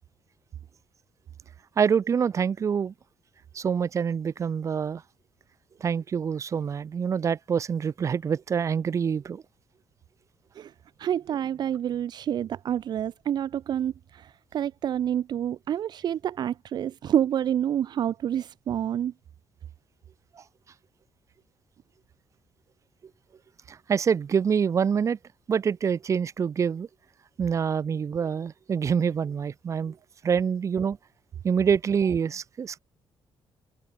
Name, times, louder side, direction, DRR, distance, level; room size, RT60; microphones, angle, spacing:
voice 1, 1.8-2.9 3.5-5.0 5.8-9.4 20.4-20.5 23.7-25.2 25.5-26.9 27.4-30.0 30.2-31.0 31.4-32.8, right 7 dB, 35° right, 2.0 m, -26 dB
voice 2, 11.0-19.1, right 10 dB, 50° right, 1.2 m, -28 dB
cardioid pair, 170°, 9 cm